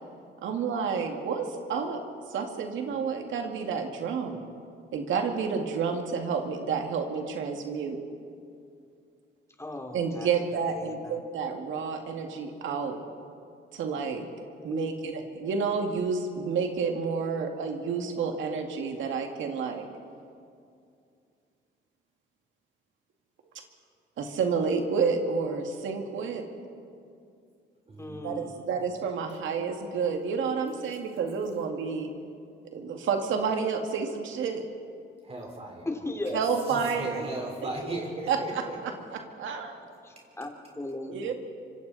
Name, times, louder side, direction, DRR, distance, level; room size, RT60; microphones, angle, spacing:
voice 1, 0.4-2.0 2.3-4.4 4.9-8.0 9.9-13.0 13.7-14.3 14.6-19.9 24.2-26.4 28.2-32.1 32.7-34.7 36.3-37.3 38.3-39.8 41.1-41.3, right 5 dB, 75° right, 3 dB, 2.2 m, -30 dB
voice 2, 9.6-10.3 10.7-11.2 14.7-14.9 28.0-28.7 35.9-36.4 40.0-41.3, left 2 dB, 15° left, 3 dB, 2.8 m, -37 dB
voice 3, 27.9-28.3 35.2-35.9 36.3-36.4 36.7-38.8, right 2 dB, 30° right, 0 dB, 4.3 m, -37 dB
25.5 x 25.0 x 4.2 m, 2.4 s
cardioid pair, 90°, 20 cm